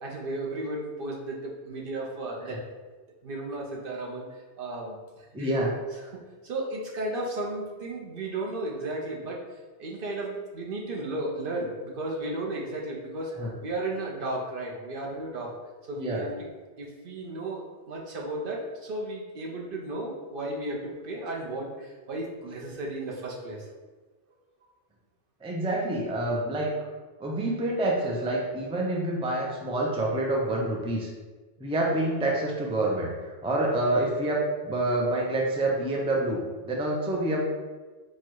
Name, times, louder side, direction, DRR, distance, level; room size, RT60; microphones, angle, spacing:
voice 1, 0.0-2.6 3.2-5.5 6.4-9.4 9.8-13.3 13.6-15.5 15.9-16.3 16.8-23.7, right 2 dB, 55° right, -1 dB, 0.9 m, -34 dB
voice 2, 5.3-5.7 13.4-13.5 15.9-16.2 25.4-26.7 27.2-31.1 31.6-37.5, right 1 dB, 5° right, -2 dB, 0.4 m, -27 dB
4.5 x 2.3 x 4.6 m, 1.3 s
omnidirectional pair, 1.1 m